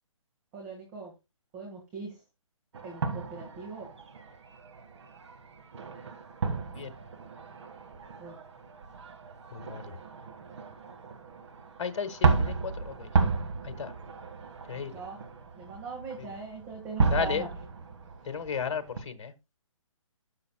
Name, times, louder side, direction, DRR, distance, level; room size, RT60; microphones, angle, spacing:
voice 1, 0.5-1.1 1.5-2.2 2.8-3.9 8.2-8.4 14.9-15.2 15.6-17.5, right 4 dB, 20° right, 1.6 m, -40 dB
sound 1, 2.7-19.0, right 4 dB, 55° right, 1.5 m, -33 dB
voice 2, 9.5-10.0 11.8-13.1 13.6-13.9 14.7-15.0 16.2-16.3 17.1-17.4 18.2-19.3, left 6 dB, 55° left, 1.4 m, -34 dB
12.5 x 6.5 x 2.2 m
hypercardioid pair, 150°, 17 cm